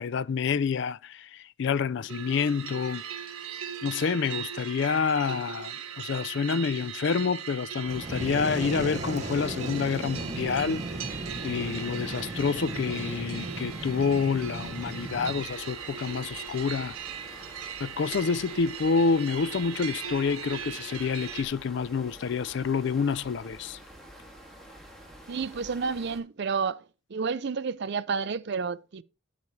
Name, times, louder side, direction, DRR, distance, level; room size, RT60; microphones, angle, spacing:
voice 1, 0.0-3.0 3.8-10.9 11.4-17.0 17.8-23.8, left 5 dB, 55° left, 0.3 m, -28 dB
sound 1, 2.1-21.4, right 8 dB, 90° right, 1.3 m, -39 dB
Fire, 7.8-15.4, right 2 dB, 35° right, 0.8 m, -36 dB
sound 2, 7.9-26.2, equal, ahead, 2.3 m, -48 dB
voice 2, 25.3-26.8 27.1-29.0, right 5 dB, 50° right, 0.5 m, -30 dB
9.7 x 8.3 x 3.2 m
head